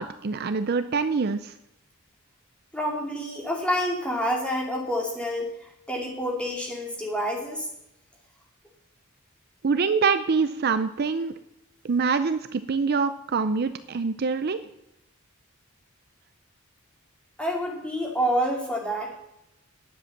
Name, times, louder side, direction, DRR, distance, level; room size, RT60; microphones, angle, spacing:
voice 1, 0.0-1.5 9.6-11.3 11.8-14.6, right 5 dB, 45° right, 11 dB, 0.5 m, -25 dB
voice 2, 2.7-7.7 17.4-19.1, equal, 5° left, -1 dB, 2.4 m, -28 dB
10.5 x 7.8 x 7.3 m, 0.82 s
head